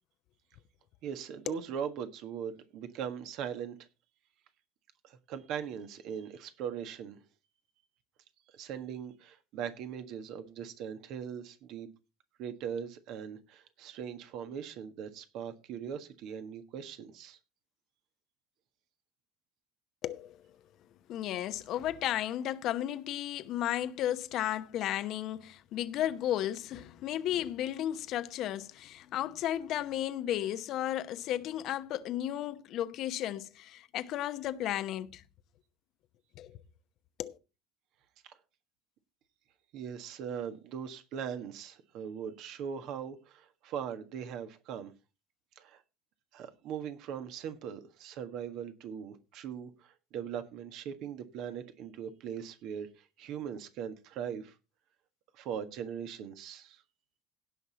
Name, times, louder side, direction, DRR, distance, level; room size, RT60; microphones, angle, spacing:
voice 1, 1.0-3.7 5.0-7.2 8.5-11.9 12.4-17.4 39.7-44.9 45.6-45.8 46.3-52.9 53.2-54.5 55.3-56.8, right 8 dB, 60° right, 1.5 m, -40 dB
voice 2, 20.0-20.4 21.1-35.2 36.4-36.6 37.2-37.4, left 12 dB, 55° left, 0.9 m, -34 dB
17.0 x 5.9 x 4.1 m
hypercardioid pair, 70°, 0 cm